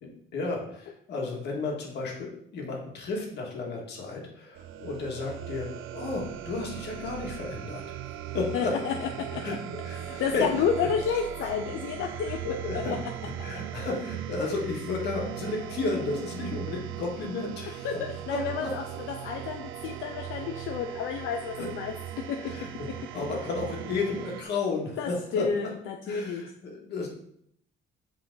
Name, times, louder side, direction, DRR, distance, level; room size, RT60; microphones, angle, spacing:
voice 1, 0.0-8.7 9.4-9.6 9.8-10.5 12.4-13.0 13.4-18.7 21.6-21.7 22.4-25.5 26.1-27.1, left 3 dB, 60° left, -1 dB, 2.1 m, -33 dB
sound 1, 4.5-24.4, right 11 dB, 90° right, 0.5 m, -39 dB
voice 2, 8.5-9.6 10.0-12.4 12.7-13.0 17.8-21.9 22.3-22.4 25.0-26.4, left 6 dB, 85° left, 4 dB, 0.7 m, -30 dB
7.9 x 5.0 x 4.0 m, 0.70 s
cardioid pair, 160°, 20 cm